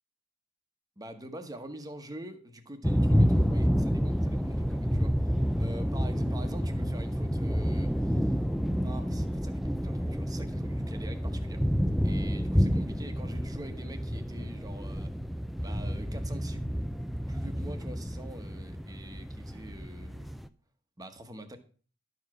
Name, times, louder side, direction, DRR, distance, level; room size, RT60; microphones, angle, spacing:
voice 1, 1.0-8.4 8.8-11.6 12.0-15.1 15.6-16.7 17.3-20.4 21.0-21.6, right 1 dB, 20° right, 1.1 m, -45 dB
sound 1, 2.8-20.5, equal, ahead, 0.3 m, -29 dB
12.0 x 4.8 x 6.0 m
head